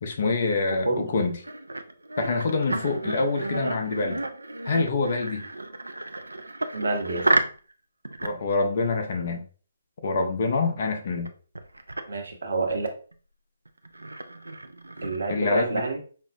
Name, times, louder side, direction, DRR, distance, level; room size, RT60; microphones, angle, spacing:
voice 1, 0.0-1.4 2.2-4.2 4.7-5.4 8.2-9.4 10.0-11.3 15.3-15.8, left 3 dB, 50° left, 4 dB, 0.6 m, -26 dB
sound 1, 1.0-7.7 8.0-8.5 11.3-11.4 11.6-12.0 13.1-13.2 13.7-15.4, right 2 dB, 85° right, 0.4 m, -31 dB
voice 2, 6.7-7.4 12.1-12.9 15.0-16.0, right 3 dB, 65° right, 4 dB, 0.9 m, -28 dB
5.2 x 2.0 x 2.6 m, 0.41 s
figure-of-eight pair, 140°, 0 cm